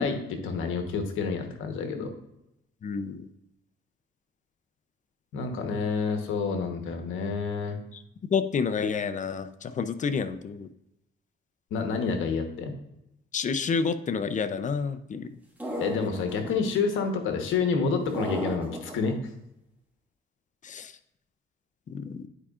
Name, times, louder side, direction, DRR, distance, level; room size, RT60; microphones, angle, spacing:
voice 1, 0.0-2.1 5.3-7.8 11.7-12.7 15.8-19.2, left 5 dB, 85° left, 5 dB, 1.1 m, -28 dB
voice 2, 2.8-3.3 7.9-8.0 8.3-10.7 13.3-15.3 20.6-21.0 21.9-22.3, left 5 dB, 40° left, 11 dB, 0.6 m, -29 dB
sound 1, 15.6-16.5 18.1-19.1, equal, 10° right, 2.1 m, -34 dB
9.7 x 4.9 x 2.4 m, 0.85 s
cardioid pair, 90°, 20 cm